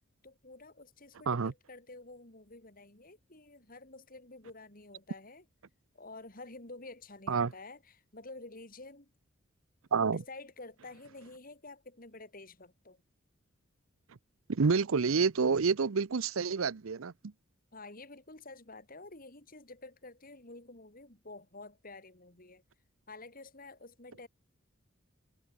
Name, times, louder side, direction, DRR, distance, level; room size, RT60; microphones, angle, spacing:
voice 1, 0.2-5.4 5.9-9.1 10.0-13.0 17.7-22.6 23.1-24.3, left 2 dB, 45° left, 4.1 m, -50 dB
voice 2, 9.9-10.2 14.5-17.1, right 5 dB, 85° right, 0.7 m, -28 dB
head